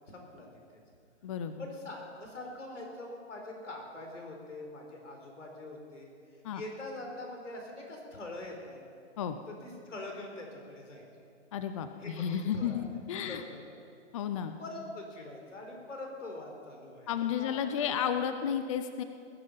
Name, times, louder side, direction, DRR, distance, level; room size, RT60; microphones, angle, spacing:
voice 1, 0.1-0.5 1.6-6.1 6.5-8.8 9.6-11.0 12.0-12.9 13.2-13.6 14.6-17.6 17.9-18.0, left 2 dB, 85° left, 1 dB, 4.4 m, -43 dB
voice 2, 1.2-1.6 6.4-6.6 9.2-9.4 11.5-13.4 14.1-14.6 17.1-19.0, left 8 dB, 30° left, 9 dB, 0.5 m, -32 dB
20.0 x 10.5 x 5.7 m, 2.5 s
hypercardioid pair, 145°, 36 cm